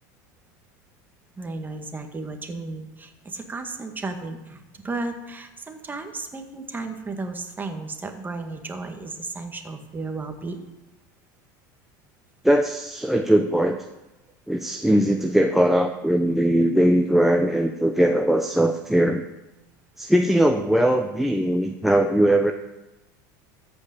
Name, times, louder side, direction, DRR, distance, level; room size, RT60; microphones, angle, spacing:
voice 1, 1.4-10.6, right 3 dB, 20° right, 5 dB, 1.9 m, -34 dB
voice 2, 12.4-13.8 14.5-19.2 20.0-22.5, right 1 dB, ahead, 6 dB, 0.8 m, -20 dB
14.0 x 5.4 x 8.5 m, 0.99 s
supercardioid pair, 100°, 10 cm